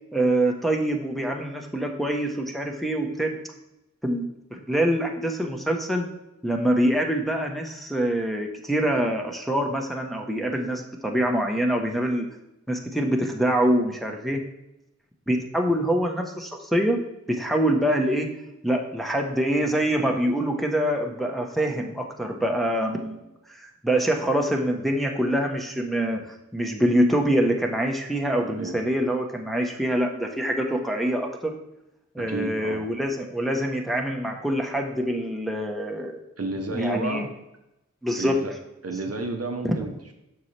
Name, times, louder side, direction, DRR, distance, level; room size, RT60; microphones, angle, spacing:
voice 1, 0.1-3.4 4.0-4.2 4.5-6.1 6.4-12.3 12.7-14.4 15.3-17.0 17.3-18.3 18.6-31.5 32.1-36.2 36.7-37.3 38.0-38.4 39.6-39.7, right 1 dB, ahead, 1 dB, 1.0 m, -25 dB
voice 2, 28.4-28.8 32.2-32.8 36.4-37.3 38.2-38.5 38.8-40.1, right 2 dB, 55° right, 4 dB, 0.9 m, -31 dB
6.9 x 5.7 x 3.3 m, 0.90 s
cardioid pair, 40°, 30 cm